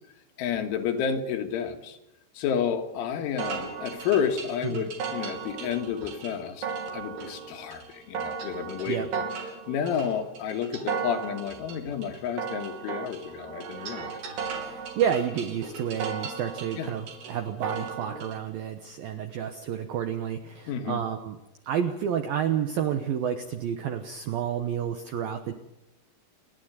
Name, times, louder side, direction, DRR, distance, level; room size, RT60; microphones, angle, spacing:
voice 1, 0.4-2.0 2.4-6.7 6.9-9.1 9.7-14.1 16.8-16.9 20.7-21.0, left 7 dB, 75° left, 6 dB, 4.0 m, -30 dB
sound 1, 3.4-18.4, right 5 dB, 55° right, 4.4 m, -36 dB
voice 2, 14.5-21.4 21.6-25.5, right 8 dB, 75° right, 7 dB, 2.1 m, -30 dB
29.5 x 11.5 x 8.1 m, 0.96 s
omnidirectional pair, 5.8 m